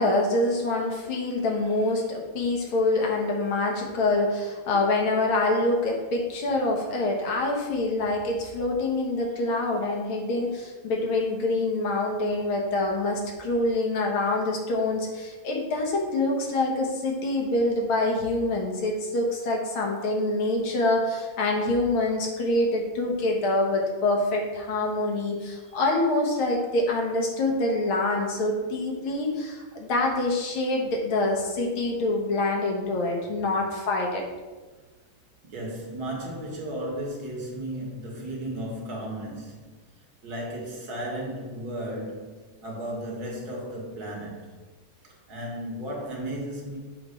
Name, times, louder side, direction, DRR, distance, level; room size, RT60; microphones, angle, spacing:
voice 1, 0.0-34.2, left 2 dB, 85° left, 0 dB, 1.9 m, -26 dB
voice 2, 35.4-39.7 40.2-44.6 45.0-46.8, right 1 dB, 55° right, -1 dB, 1.6 m, -35 dB
7.2 x 3.1 x 5.0 m, 1.3 s
omnidirectional pair, 2.2 m